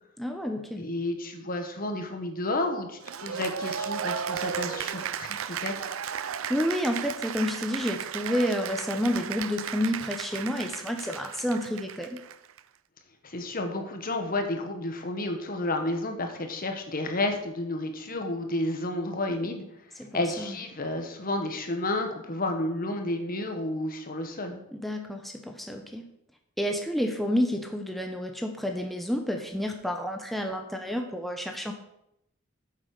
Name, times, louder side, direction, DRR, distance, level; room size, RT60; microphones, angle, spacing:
voice 1, 0.2-0.9 6.5-12.2 20.0-20.5 24.7-26.1 26.6-31.7, equal, ahead, 3 dB, 0.9 m, -30 dB
voice 2, 0.8-5.9 13.2-19.6 19.9-24.6, left 2 dB, 45° left, 5 dB, 1.6 m, -31 dB
Cheering / Applause, 3.0-12.6, right 8 dB, 85° right, 0.5 m, -35 dB
9.0 x 7.5 x 6.6 m, 0.79 s
head